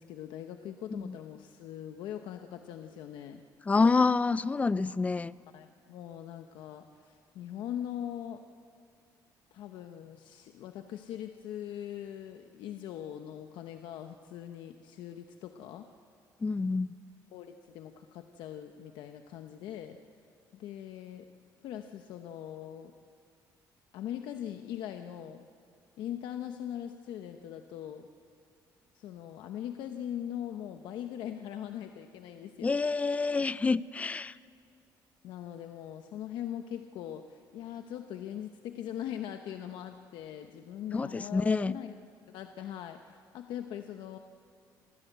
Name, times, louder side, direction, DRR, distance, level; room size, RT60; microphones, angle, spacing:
voice 1, 0.0-3.4 5.5-8.4 9.5-15.9 17.3-20.0 20.5-21.3 21.6-22.9 23.9-25.4 26.0-28.1 28.9-32.8 35.2-42.0 42.3-44.2, left 10 dB, 80° left, 6 dB, 1.0 m, -41 dB
voice 2, 3.7-5.4 16.4-17.0 32.6-34.3 40.9-41.8, left 4 dB, 20° left, 17 dB, 0.5 m, -27 dB
28.0 x 15.5 x 8.1 m, 2.3 s
cardioid pair, 130°, 8 cm